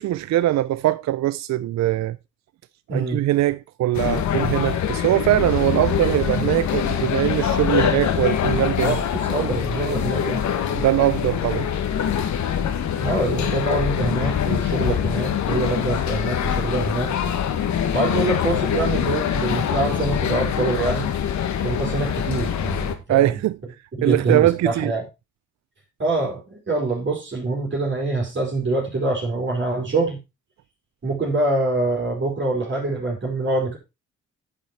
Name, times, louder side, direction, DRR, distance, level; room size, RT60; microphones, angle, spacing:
voice 1, 0.0-2.2 2.9-9.0 10.7-11.7 23.1-23.6 24.0-24.9, right 15 dB, 65° right, 0.5 m, -21 dB
voice 2, 2.9-3.3 8.8-10.5 12.9-17.1 17.9-21.1 21.6-23.3 24.0-25.1 26.0-30.2 31.0-33.8, right 2 dB, 40° right, 4.1 m, -25 dB
sound 1, 3.9-22.9, left 9 dB, 70° left, 1.6 m, -24 dB
10.0 x 6.3 x 4.2 m
cardioid pair, 90°, 30 cm